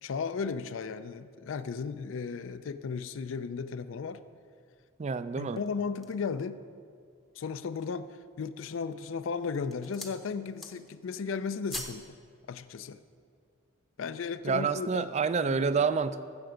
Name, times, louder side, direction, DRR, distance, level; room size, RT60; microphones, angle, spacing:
voice 1, 0.0-4.2 5.4-6.6 7.4-12.0 12.5-13.0 14.0-15.1 15.4-15.6, left 5 dB, 65° left, 12 dB, 0.4 m, -35 dB
voice 2, 5.0-5.6 14.4-16.3, right 5 dB, 35° right, 13 dB, 0.3 m, -28 dB
sound 1, 5.3-6.3 6.9-7.0 7.5-8.1 8.8-9.1 9.5-10.2 10.5-11.0 11.3-12.1 12.4-12.5, equal, ahead, 0.7 m, -43 dB
14.5 x 6.9 x 5.0 m, 2.3 s
head